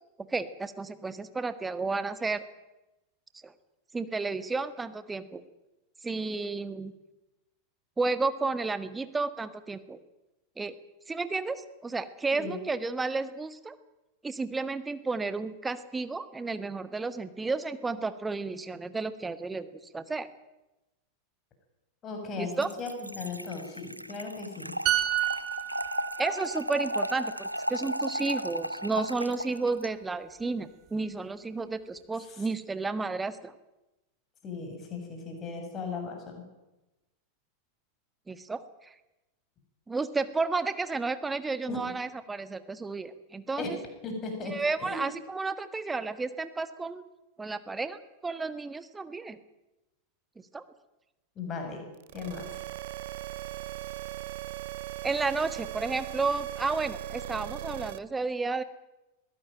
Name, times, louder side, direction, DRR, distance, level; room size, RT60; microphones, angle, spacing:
voice 1, 0.2-2.4 3.4-3.5 3.9-5.4 6.0-6.9 8.0-10.0 10.6-10.8 11.1-13.8 14.2-19.7 19.9-20.3 22.4-22.7 26.2-33.5 38.3-38.9 39.9-43.8 44.5-47.0 47.4-49.4 50.5-50.6 55.0-58.6, right 3 dB, 10° right, 12 dB, 1.5 m, -32 dB
voice 2, 22.0-24.8 32.3-32.5 34.4-36.4 41.7-41.9 43.6-43.8 44.0-44.5 44.8-45.1 51.4-51.9 52.1-52.6, left 4 dB, 30° left, 4 dB, 7.1 m, -37 dB
Trickle dribble / Fill (with liquid), 22.5-29.9, equal, 90° right, 0.8 m, -35 dB
sound 1, 24.9-28.5 28.8-29.0, right 13 dB, 35° right, 3.0 m, -32 dB
sound 2, 52.0-58.0, right 15 dB, 55° right, 0.8 m, -39 dB
22.0 x 17.0 x 9.0 m, 1.0 s
figure-of-eight pair, 90°, 0 cm